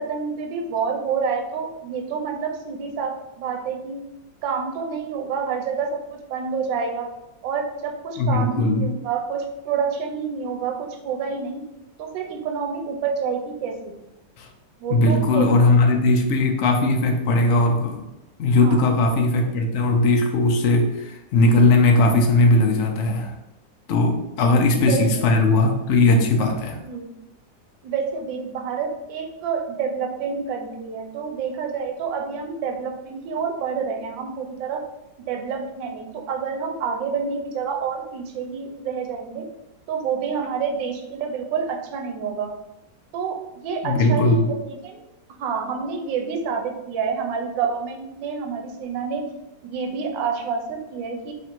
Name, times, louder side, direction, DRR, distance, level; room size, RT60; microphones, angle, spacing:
voice 1, 0.0-4.0 4.4-7.1 7.4-11.6 12.0-13.9 14.8-15.6 15.9-16.0 18.6-18.8 24.9-25.1 25.3-25.6 26.8-27.1 27.8-34.8 35.3-39.5 39.9-42.5 43.1-45.0 45.3-49.2 49.6-51.3, right 6 dB, 85° right, 4 dB, 1.3 m, -28 dB
voice 2, 8.2-8.9 14.4-14.5 14.9-18.1 18.4-23.3 23.9-26.8 43.8-44.5, left 2 dB, 85° left, 2 dB, 0.6 m, -18 dB
3.3 x 2.5 x 4.4 m, 0.96 s
omnidirectional pair, 2.0 m